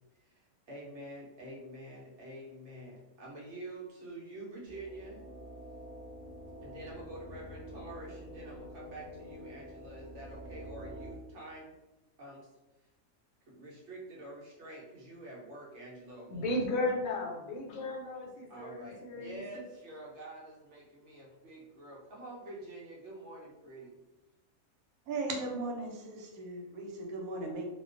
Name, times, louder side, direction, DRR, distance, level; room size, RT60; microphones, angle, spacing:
voice 1, 0.2-5.2 6.6-11.8 12.2-12.5 13.5-16.9 18.5-23.9, right 1 dB, 65° right, -3 dB, 0.8 m, -47 dB
sound 1, 4.6-11.1, equal, 20° right, 0.7 m, -47 dB
voice 2, 16.3-19.4, left 2 dB, 75° left, -1 dB, 1.0 m, -34 dB
voice 3, 25.1-27.7, right 2 dB, 85° right, 1 dB, 1.0 m, -37 dB
2.3 x 2.2 x 2.4 m, 1.0 s
omnidirectional pair, 1.5 m